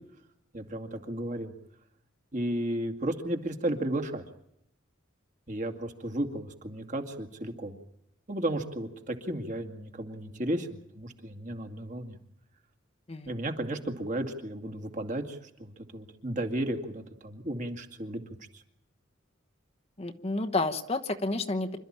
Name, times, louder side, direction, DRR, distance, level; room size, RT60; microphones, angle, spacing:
voice 1, 0.5-1.5 2.3-4.2 5.5-7.8 8.3-12.2 13.3-18.2 18.5-18.6, right 1 dB, 40° right, 6 dB, 2.2 m, -34 dB
voice 2, 20.0-21.8, left 2 dB, 30° left, 5 dB, 1.1 m, -30 dB
27.0 x 13.0 x 8.9 m, 0.77 s
head